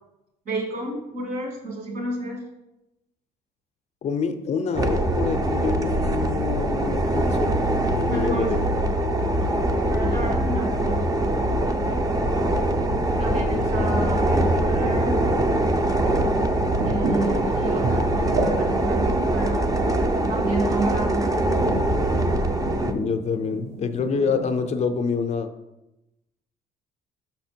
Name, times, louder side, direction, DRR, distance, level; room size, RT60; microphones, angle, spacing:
voice 1, 0.5-2.4 8.1-8.6 9.4-9.6 9.9-12.1 13.2-15.2 16.8-19.8 20.3-21.3, right 2 dB, 55° right, -1 dB, 2.8 m, -31 dB
voice 2, 4.0-7.5 7.9-8.6 10.0-10.2 13.1-13.9 22.8-25.5, left 5 dB, 40° left, 7 dB, 0.6 m, -27 dB
sound 1, 4.8-22.9, right 1 dB, 20° right, 0.6 m, -23 dB
sound 2, 16.7-24.9, right 2 dB, 75° right, 1.7 m, -33 dB
6.0 x 5.8 x 4.4 m, 0.94 s
cardioid pair, 110°, 17 cm